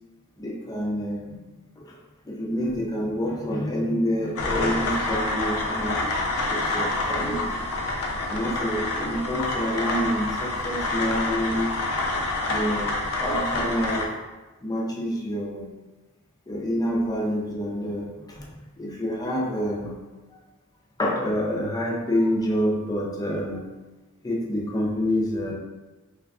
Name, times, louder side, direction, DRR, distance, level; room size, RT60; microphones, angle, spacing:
voice 1, 0.4-1.4 1.8-2.0 2.3-6.0 6.5-7.6 8.2-11.8 12.4-14.1 14.6-15.7 16.5-20.0 21.0-23.6 24.2-25.5, equal, 15° left, -2 dB, 0.4 m, -27 dB
sound 1, 4.4-14.1, left 2 dB, 75° left, 0.5 m, -27 dB
3.4 x 3.3 x 2.3 m, 1.1 s
head